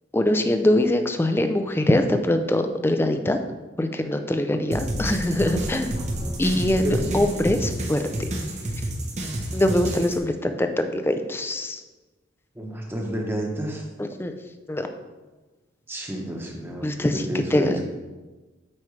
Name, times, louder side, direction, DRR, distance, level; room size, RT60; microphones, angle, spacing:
voice 1, 0.1-3.4 3.8-6.0 6.4-8.1 9.5-11.8 14.0-14.3 14.7-14.9 16.8-17.3 17.5-17.8, left 1 dB, 10° left, 7 dB, 0.4 m, -23 dB
sound 1, 4.7-10.2, right 1 dB, 35° right, 0.9 m, -29 dB
voice 2, 12.5-13.8 15.9-17.8, equal, 10° right, 0 dB, 1.0 m, -30 dB
8.4 x 4.7 x 3.2 m, 1.2 s
head